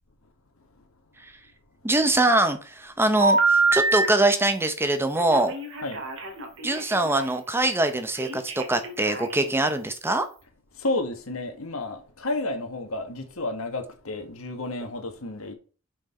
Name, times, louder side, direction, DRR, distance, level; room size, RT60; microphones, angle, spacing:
voice 1, 1.8-5.5 6.6-10.3, right 2 dB, 10° right, 0.8 m, -23 dB
Telephone, 3.2-4.1 5.2-7.3 8.1-9.6, right 3 dB, 60° right, 2.1 m, -25 dB
voice 2, 10.7-15.5, left 2 dB, 75° left, 1.7 m, -31 dB
6.5 x 6.1 x 4.3 m
head